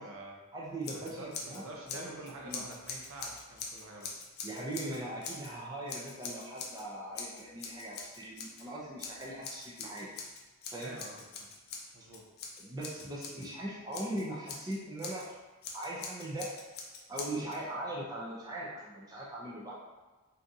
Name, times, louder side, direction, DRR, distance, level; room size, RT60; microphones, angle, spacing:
voice 1, 0.0-0.4 0.9-4.1 10.8-12.3, right 1 dB, 70° right, -1 dB, 0.6 m, -47 dB
voice 2, 0.5-2.1 2.4-2.6 4.4-10.1 10.7-10.9 12.6-15.2 15.7-16.5 17.1-19.7, right 1 dB, 15° right, -5 dB, 0.4 m, -40 dB
Scissors, 0.8-1.6 1.9-5.5 5.9-6.8 7.1-8.6 9.0-13.5 13.9-15.3 15.6-17.6, left 4 dB, 45° left, 0.4 m, -43 dB
3.5 x 2.6 x 2.6 m, 1.2 s
head